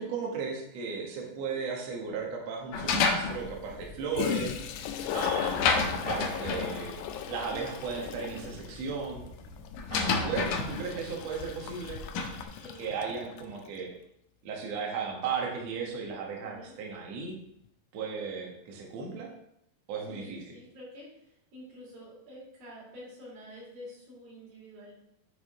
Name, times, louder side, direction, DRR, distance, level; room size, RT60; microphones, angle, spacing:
voice 1, 0.0-4.6 5.1-5.6 6.0-6.9 7.3-9.2 9.9-12.0 12.8-13.9 14.4-17.4 17.9-19.3 19.9-20.4, right 5 dB, 60° right, -1 dB, 2.1 m, -35 dB
sound 1, 2.7-12.4, left 4 dB, 75° left, 2.3 m, -32 dB
Toilet flush, 4.1-13.5, left 9 dB, 90° left, 1.6 m, -36 dB
voice 2, 12.5-12.9 13.3-13.4 16.4-16.7 20.1-24.9, left 1 dB, 85° right, -6 dB, 4.9 m, -48 dB
8.9 x 4.9 x 3.7 m, 0.77 s
omnidirectional pair, 4.1 m